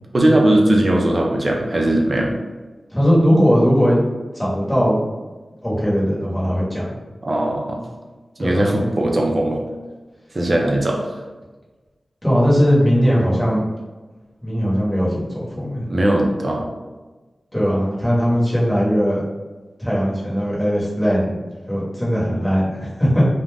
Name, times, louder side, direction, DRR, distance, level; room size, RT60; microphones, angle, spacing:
voice 1, 0.1-2.3 7.2-7.8 8.4-9.6 10.3-11.2 15.9-16.6, right 1 dB, 40° right, 0 dB, 0.5 m, -18 dB
voice 2, 2.9-4.0 4.3-5.0 5.6-7.0 8.4-8.6 12.2-13.6 14.4-15.8 17.5-19.2 19.8-21.4 21.7-23.3, equal, 10° left, -7 dB, 1.0 m, -18 dB
2.5 x 2.1 x 3.3 m, 1.2 s
wide cardioid pair, 70°, 0 cm